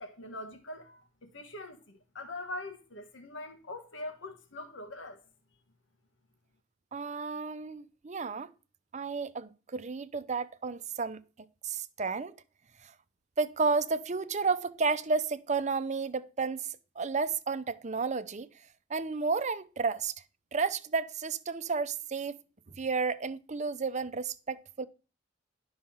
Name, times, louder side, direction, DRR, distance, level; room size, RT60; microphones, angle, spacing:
voice 1, 0.0-5.2, left 2 dB, 80° left, 1.5 m, -43 dB
voice 2, 6.9-8.5 8.9-11.2 11.6-12.3 12.8-12.9 13.4-18.5 18.9-20.1 20.5-22.4 22.7-24.9, right 4 dB, 40° right, 0.7 m, -32 dB
12.0 x 5.7 x 5.7 m
head